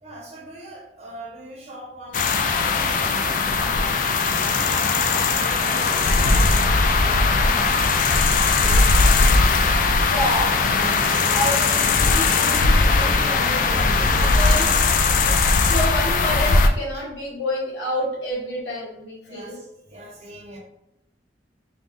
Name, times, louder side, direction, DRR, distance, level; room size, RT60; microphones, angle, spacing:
voice 1, 0.0-4.4 4.7-7.7 8.1-8.8 19.3-20.6, right 1 dB, 35° right, -2 dB, 1.0 m, -41 dB
sound 1, 2.1-16.7, left 3 dB, 45° left, 0.3 m, -19 dB
sound 2, 2.7-14.8, equal, 5° right, 0.6 m, -36 dB
voice 2, 10.0-10.5 11.3-19.6, left 1 dB, 80° left, -4 dB, 1.5 m, -29 dB
3.8 x 2.4 x 3.6 m, 0.84 s
head